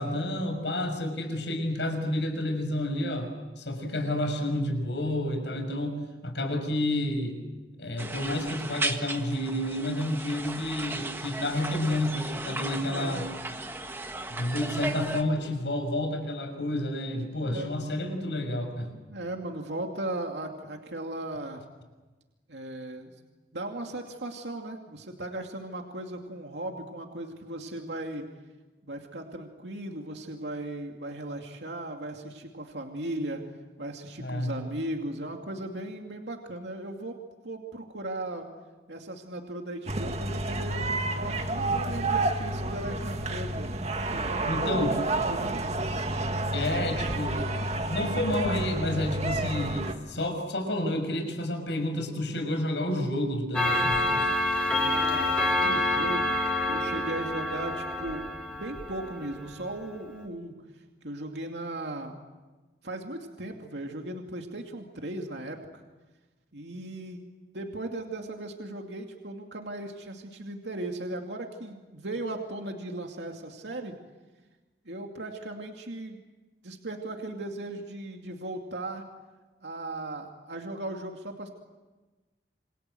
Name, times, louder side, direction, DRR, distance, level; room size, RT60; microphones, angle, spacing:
voice 1, 0.0-3.3 3.6-7.4 7.8-13.3 14.3-18.9 34.1-34.5 44.4-45.0 46.5-47.5 47.7-54.3, left 1 dB, 90° left, 5 dB, 6.2 m, -30 dB
sound 1, 8.0-15.2, right 2 dB, 15° right, 1.5 m, -36 dB
voice 2, 12.8-13.3 17.4-17.7 19.1-21.6 22.5-23.1 23.5-28.3 28.8-33.4 33.8-38.4 38.9-43.7 44.1-45.6 54.6-60.6 61.0-62.2 62.8-65.8 66.5-73.9 74.9-76.2 76.6-79.1 79.6-81.5, right 1 dB, 85° right, 2 dB, 2.6 m, -37 dB
sound 2, 39.9-49.9, right 2 dB, 40° right, 1.9 m, -30 dB
Clock, 53.5-59.5, left 2 dB, 5° left, 4.4 m, -27 dB
28.0 x 26.5 x 7.9 m, 1.2 s
head